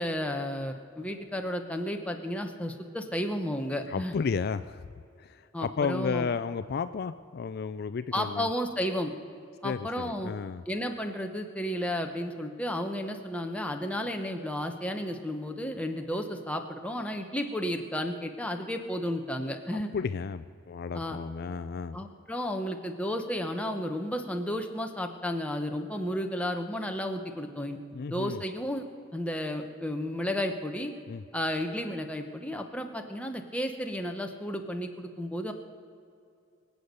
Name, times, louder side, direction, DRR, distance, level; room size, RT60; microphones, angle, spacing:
voice 1, 0.0-4.1 5.5-6.3 8.1-9.1 9.6-10.3 10.7-19.9 20.9-21.2 21.9-27.8 28.1-28.9 29.1-30.9 31.3-35.5, equal, 5° left, 4 dB, 1.0 m, -32 dB
voice 2, 3.9-4.8 5.2-8.5 9.6-10.6 19.9-22.0 27.9-28.4 31.1-31.2, left 5 dB, 50° left, 12 dB, 0.4 m, -33 dB
24.0 x 8.0 x 6.7 m, 2.5 s
head